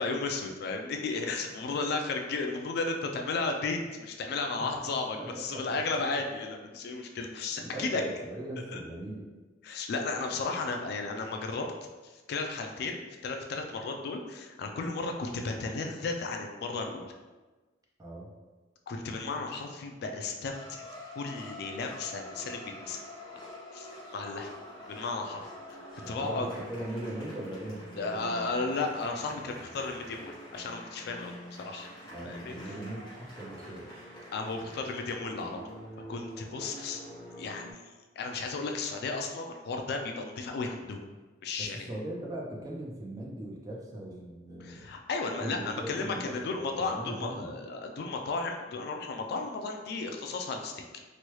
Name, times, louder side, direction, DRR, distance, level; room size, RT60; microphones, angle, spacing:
voice 1, 0.0-8.0 8.7-8.8 9.6-11.7 12.3-17.1 18.9-20.8 21.2-23.0 23.7-24.5 24.9-25.5 26.1-26.5 28.0-31.3 31.6-31.9 32.2-32.5 34.3-35.6 36.1-37.0 37.4-37.7 38.2-41.1 41.4-41.9 44.6-50.8, left 3 dB, 55° left, 3 dB, 0.3 m, -34 dB
voice 2, 5.2-5.8 7.6-9.3 18.0-18.3 26.0-28.8 32.1-33.9 41.6-44.8 45.4-47.6, right 1 dB, 20° right, -2 dB, 0.5 m, -40 dB
sound 1, 20.5-37.7, equal, 25° left, 1.0 m, -46 dB
3.1 x 2.2 x 3.0 m, 1.2 s
head